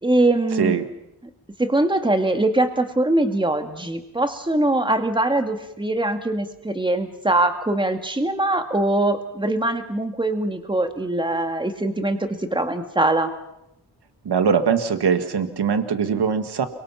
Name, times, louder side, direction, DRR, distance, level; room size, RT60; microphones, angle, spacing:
voice 1, 0.0-0.7 1.6-13.3, right 2 dB, 10° right, 6 dB, 2.2 m, -22 dB
voice 2, 0.5-0.8 14.3-16.7, right 6 dB, 75° right, 9 dB, 1.9 m, -21 dB
29.5 x 24.0 x 5.9 m, 0.83 s
wide cardioid pair, 115°, 40 cm